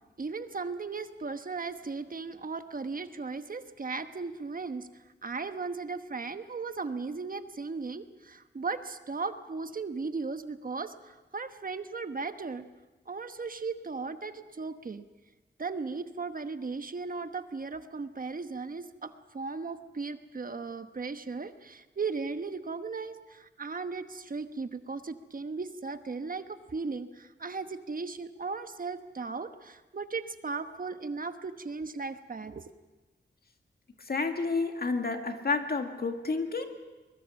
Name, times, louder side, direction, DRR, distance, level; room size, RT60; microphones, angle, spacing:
voice 1, 0.2-4.9 5.2-12.7 13.1-15.0 15.6-32.6, right 4 dB, 45° right, 9 dB, 1.1 m, -37 dB
voice 2, 34.1-36.7, left 4 dB, 55° left, 5 dB, 2.1 m, -30 dB
23.5 x 21.5 x 7.1 m, 1.2 s
wide cardioid pair, 105°, 19 cm